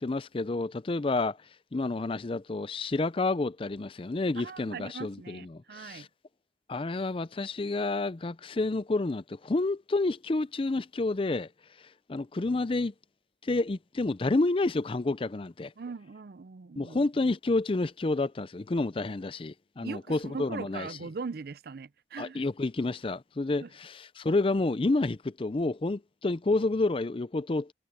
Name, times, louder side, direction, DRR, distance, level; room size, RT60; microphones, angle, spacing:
voice 1, 0.0-1.4 1.7-6.1 6.7-11.5 12.1-12.9 13.4-15.7 16.8-20.9 22.2-27.7, left 2 dB, 30° left, 0.5 m, -29 dB
voice 2, 4.4-6.1 15.8-17.0 19.8-22.4 23.6-23.7, right 4 dB, 55° right, 0.5 m, -40 dB
head